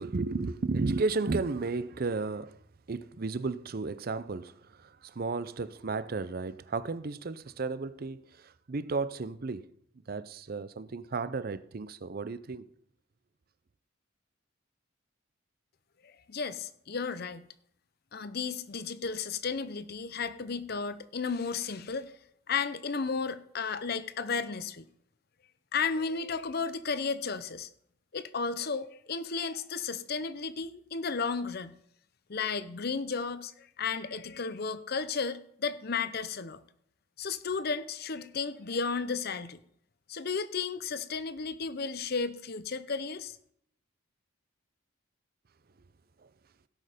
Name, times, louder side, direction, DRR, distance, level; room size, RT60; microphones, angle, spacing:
voice 1, 0.0-2.6 2.9-9.7 10.1-12.7 46.2-46.3, right 3 dB, 45° right, 0.5 m, -33 dB
voice 2, 16.0-17.5 18.1-22.1 22.5-24.9 25.7-27.7 28.1-31.8 32.3-36.6 37.2-39.6 40.1-43.4, left 5 dB, 50° left, 0.7 m, -33 dB
16.5 x 6.5 x 5.0 m
head